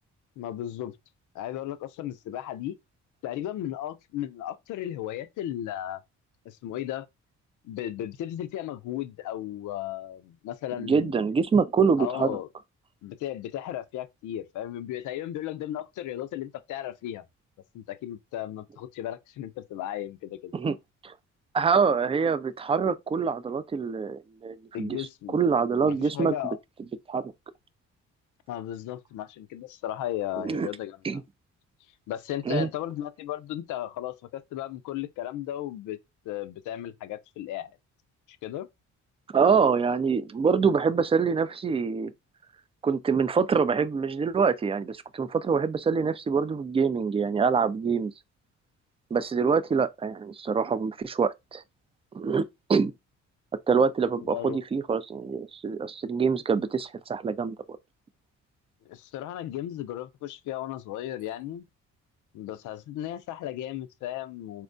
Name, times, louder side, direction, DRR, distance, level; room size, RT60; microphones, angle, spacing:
voice 1, 0.4-1.0 1.3-2.8 3.2-6.0 6.5-7.1 7.6-11.3 12.0-12.5 13.0-17.2 17.7-20.5 24.7-25.4 25.8-26.6 28.5-31.2 32.1-36.0 36.2-37.8 38.3-38.7 54.2-54.6 58.9-61.7 62.3-64.6, left 12 dB, 80° left, 0.5 m, -35 dB
voice 2, 10.9-12.4 20.5-20.7 21.0-21.1 21.5-25.0 25.3-26.3 27.1-27.3 30.4-30.7 31.0-31.2 32.5-32.7 39.3-42.1 42.8-48.1 49.1-51.6 52.1-52.9 53.7-57.8, right 5 dB, 20° right, 0.3 m, -25 dB
4.3 x 2.1 x 2.5 m
cardioid pair, 90°, 30 cm